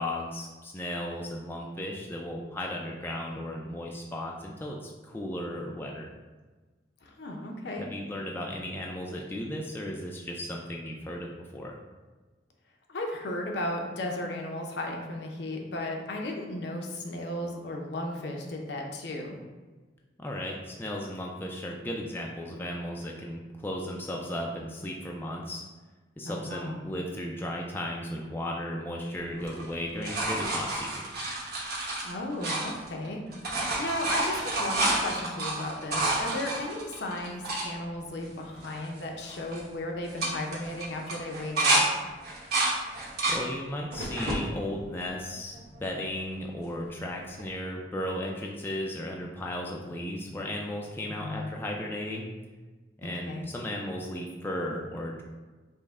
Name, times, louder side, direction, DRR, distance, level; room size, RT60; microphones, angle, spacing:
voice 1, 0.0-6.1 7.8-11.8 20.2-25.6 26.2-31.3 43.3-52.3 53.0-55.2, left 1 dB, 10° left, -1 dB, 0.3 m, -35 dB
voice 2, 7.0-7.8 12.9-19.4 26.2-26.8 32.0-33.2 33.5-41.8 51.1-51.5 53.0-53.5, left 1 dB, 65° left, 1 dB, 0.6 m, -35 dB
sound 1, 29.4-33.1 33.3-37.7 38.2-38.3 38.6-39.0 39.3-39.6 40.0-41.8 42.2-43.4 43.9-44.4 45.0-45.8 47.4-47.5, right 2 dB, 55° right, 1.0 m, -29 dB
5.3 x 2.1 x 3.5 m, 1.3 s
head